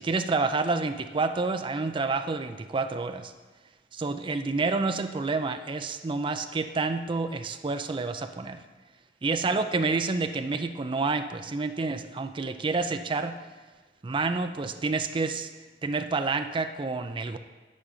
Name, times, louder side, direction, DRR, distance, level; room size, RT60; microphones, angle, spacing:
voice 1, 0.0-3.3 3.9-8.6 9.2-13.4 14.0-15.5 15.8-17.4, right 3 dB, 25° right, 8 dB, 0.4 m, -29 dB
11.5 x 3.8 x 7.1 m, 1.3 s
head